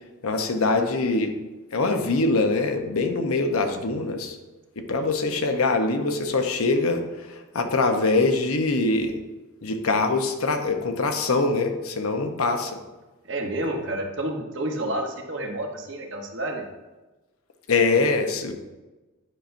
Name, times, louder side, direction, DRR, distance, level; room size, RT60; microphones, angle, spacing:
voice 1, 0.2-1.3 1.7-4.4 4.8-7.0 7.5-9.2 9.6-12.8 17.7-18.5, left 3 dB, 90° left, 5 dB, 0.8 m, -23 dB
voice 2, 13.3-16.7, right 1 dB, 55° right, 2 dB, 1.0 m, -29 dB
9.8 x 5.7 x 2.6 m, 1.1 s
head